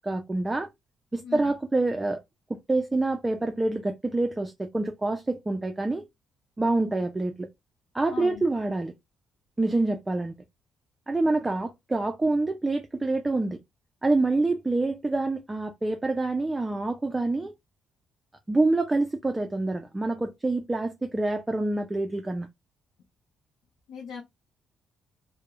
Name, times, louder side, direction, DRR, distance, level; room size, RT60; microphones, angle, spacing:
voice 1, 0.0-0.7 1.1-2.2 2.5-6.0 6.6-7.5 7.9-8.9 9.6-10.3 11.1-13.6 14.0-17.5 18.5-22.5, right 2 dB, 15° right, 0.3 m, -26 dB
voice 2, 8.1-8.4 23.9-24.2, left 6 dB, 85° left, 0.5 m, -38 dB
2.3 x 2.0 x 2.9 m
cardioid pair, 90°, 0 cm